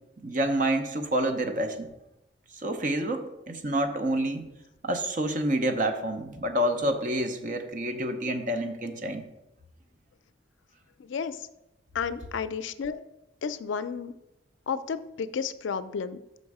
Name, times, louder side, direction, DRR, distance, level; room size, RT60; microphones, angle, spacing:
voice 1, 0.2-1.9 2.6-4.4 4.8-9.2, right 1 dB, 40° right, 6 dB, 0.7 m, -28 dB
voice 2, 11.0-11.5 11.9-13.0 13.4-14.1 14.7-16.2, left 6 dB, 70° left, 13 dB, 0.4 m, -32 dB
6.2 x 5.3 x 4.8 m, 0.90 s
head